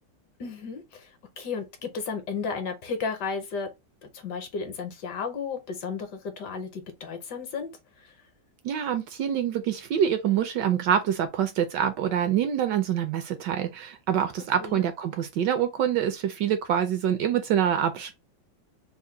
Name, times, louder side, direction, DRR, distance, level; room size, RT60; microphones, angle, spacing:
voice 1, 0.4-3.7 4.1-7.7 8.0-8.1 14.6-14.8, left 5 dB, 65° left, 1.2 m, -33 dB
voice 2, 8.6-18.1, right 9 dB, 75° right, 1.1 m, -26 dB
3.6 x 2.1 x 4.3 m
omnidirectional pair, 2.2 m